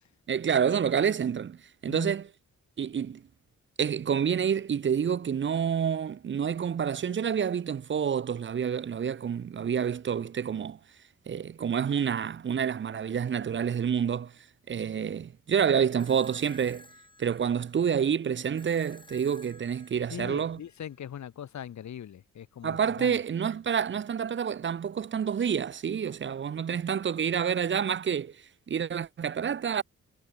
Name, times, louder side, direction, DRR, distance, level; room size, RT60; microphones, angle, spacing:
voice 1, 0.3-1.6 1.8-2.2 2.8-3.2 3.8-10.8 11.3-14.3 14.7-16.9 17.2-20.6 22.6-28.3 28.7-29.8, right 7 dB, 40° right, 0.6 m, -28 dB
sound 1, 16.0-21.0, left 2 dB, 15° left, 2.8 m, -56 dB
voice 2, 20.1-23.2, left 9 dB, 65° left, 1.4 m, -41 dB
cardioid pair, 110°, 31 cm